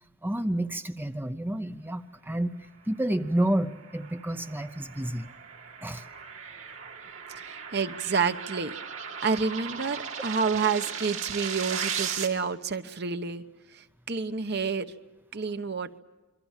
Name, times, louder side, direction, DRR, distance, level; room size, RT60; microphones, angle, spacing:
voice 1, 0.2-2.5 2.9-5.3 5.8-6.0, right 1 dB, 10° right, 8 dB, 0.8 m, -29 dB
sound 1, 3.4-12.3, right 7 dB, 80° right, 2.9 m, -37 dB
voice 2, 7.4-8.7 9.2-13.4 13.7-14.9 15.3-16.0, right 5 dB, 55° right, 9 dB, 1.0 m, -29 dB
27.5 x 23.0 x 7.4 m, 1.1 s
head